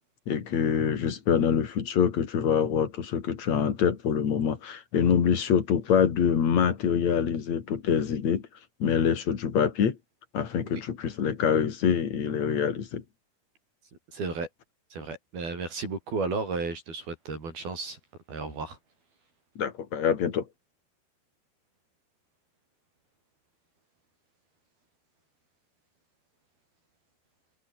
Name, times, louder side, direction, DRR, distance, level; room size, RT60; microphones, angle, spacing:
voice 1, 0.3-8.5 8.8-10.0 10.3-13.0 19.6-20.5, left 7 dB, 45° left, 3.4 m, -25 dB
voice 2, 14.1-14.5 14.9-18.0 18.3-18.8, right 4 dB, 60° right, 10.0 m, -33 dB
omnidirectional pair, 4.8 m